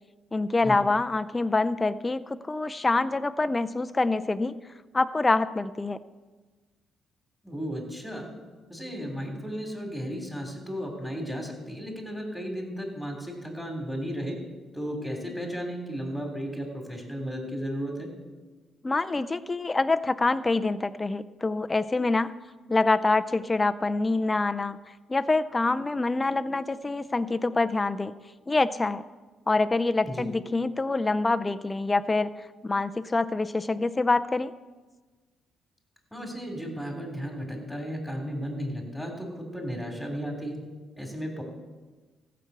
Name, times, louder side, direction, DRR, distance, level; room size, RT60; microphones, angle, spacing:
voice 1, 0.3-4.6 4.9-6.0 18.8-22.3 22.7-24.8 25.1-28.1 28.5-29.0 29.5-34.5, left 3 dB, 20° left, 11 dB, 0.5 m, -26 dB
voice 2, 7.4-8.3 8.7-14.4 14.7-18.1 30.0-30.3 36.1-40.6 41.0-41.4, equal, ahead, 2 dB, 3.3 m, -34 dB
15.0 x 6.0 x 8.0 m, 1.3 s
cardioid pair, 90°, 0 cm